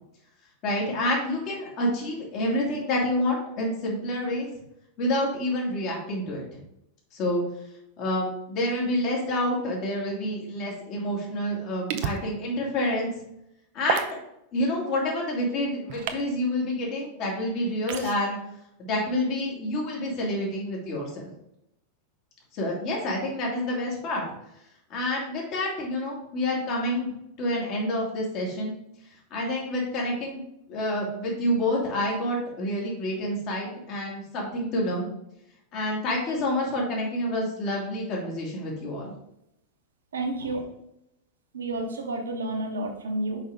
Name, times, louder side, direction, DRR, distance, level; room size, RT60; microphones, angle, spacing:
voice 1, 0.6-4.5 5.0-6.4 7.1-7.4 8.0-13.1 13.7-14.2 14.5-18.4 18.8-21.3 22.5-24.3 24.9-27.1 27.4-28.7 29.3-30.4 30.7-35.1 35.7-39.1, left 1 dB, 40° left, -2 dB, 2.4 m, -28 dB
sound 1, 11.9-12.2 13.9-14.1 15.9-16.2 17.9-18.1, right 8 dB, 50° right, 0.6 m, -29 dB
voice 2, 40.1-40.6 41.5-43.4, right 2 dB, 70° right, 2 dB, 1.2 m, -30 dB
5.6 x 5.4 x 3.6 m, 0.80 s
figure-of-eight pair, 90°, 0 cm